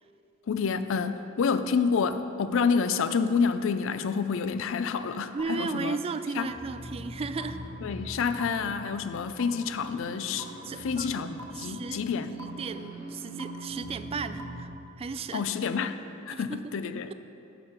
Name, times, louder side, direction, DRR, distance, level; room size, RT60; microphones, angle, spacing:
voice 1, 0.5-6.0 6.4-6.5 7.8-10.5 10.8-12.3 15.3-15.9 16.3-17.1, left 5 dB, 65° left, 11 dB, 0.4 m, -28 dB
voice 2, 5.3-7.6 10.6-12.1 12.4-14.7 15.0-15.5 16.3-16.7, right 4 dB, 30° right, 11 dB, 0.3 m, -35 dB
sound 1, 5.4-5.5 6.4-6.5 7.4-7.5 8.4-8.5 9.4-9.5 10.4-10.5 11.4-11.5 12.4-12.5 13.4-13.5 14.4-14.5, left 1 dB, 85° right, 1.1 m, -41 dB
sound 2, 6.1-14.6, right 1 dB, 85° left, 1.6 m, -42 dB
9.9 x 5.9 x 5.9 m, 2.7 s
head